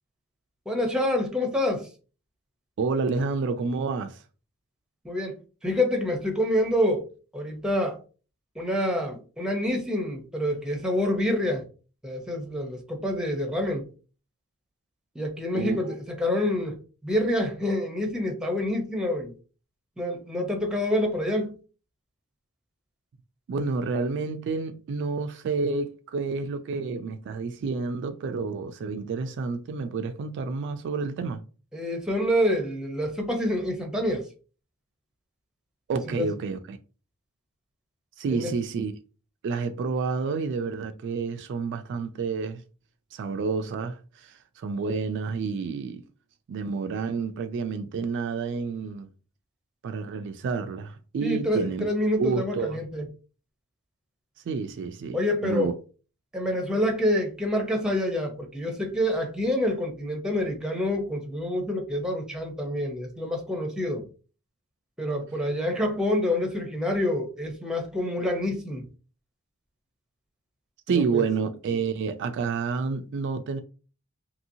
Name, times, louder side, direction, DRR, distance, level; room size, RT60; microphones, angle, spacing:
voice 1, 0.7-1.9 5.0-7.1 7.3-8.0 8.5-11.6 12.0-13.9 15.1-19.3 20.0-21.6 31.7-34.3 36.1-36.3 38.3-38.5 51.2-53.1 55.1-55.7 56.3-64.1 65.0-68.9 70.9-71.3, left 1 dB, 5° right, 0.6 m, -27 dB
voice 2, 2.8-4.2 15.5-15.9 23.5-31.4 35.9-36.8 38.2-38.9 39.4-42.6 43.1-46.0 46.5-49.1 49.8-51.8 52.2-52.8 54.5-55.2 55.4-55.7 70.9-73.6, right 4 dB, 55° right, 0.3 m, -29 dB
2.9 x 2.8 x 2.6 m
head